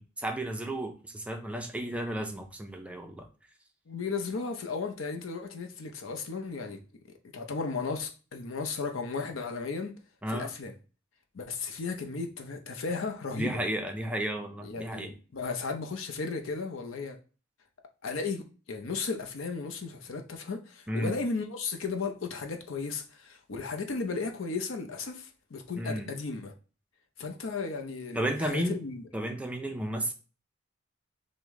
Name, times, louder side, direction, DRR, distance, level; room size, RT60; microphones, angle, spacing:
voice 1, 0.0-3.3 10.2-10.5 13.3-15.1 20.9-21.1 25.8-26.1 28.1-28.8 29.1-30.1, right 1 dB, 5° right, 0.4 m, -33 dB
voice 2, 3.9-6.8 7.3-9.9 10.3-10.7 11.3-13.6 14.6-17.2 18.0-26.5 27.2-29.0, left 4 dB, 70° left, 0.6 m, -35 dB
4.8 x 2.1 x 3.5 m
head